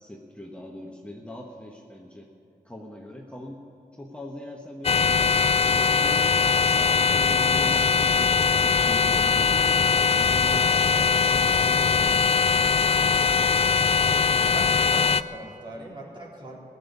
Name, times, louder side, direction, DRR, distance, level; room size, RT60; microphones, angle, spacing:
voice 1, 0.0-2.3 2.6-3.6 3.9-6.3 6.7-13.0, left 1 dB, 10° left, -1 dB, 1.3 m, -41 dB
sound 1, 4.8-15.2, left 6 dB, 40° left, 0.4 m, -21 dB
voice 2, 14.5-16.6, right 1 dB, 30° right, -4 dB, 3.6 m, -40 dB
16.5 x 7.3 x 9.8 m, 2.6 s
wide cardioid pair, 75°, 15 cm